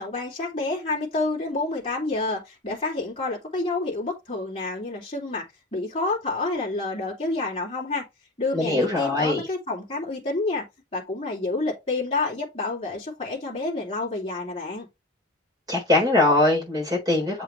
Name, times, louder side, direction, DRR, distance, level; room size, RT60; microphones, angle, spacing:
voice 1, 0.0-5.4 5.7-8.0 8.4-10.7 10.9-14.9, left 2 dB, 30° left, 2.7 m, -28 dB
voice 2, 8.5-9.4 15.7-17.4, left 2 dB, 20° right, 4.0 m, -22 dB
7.6 x 4.6 x 3.2 m
head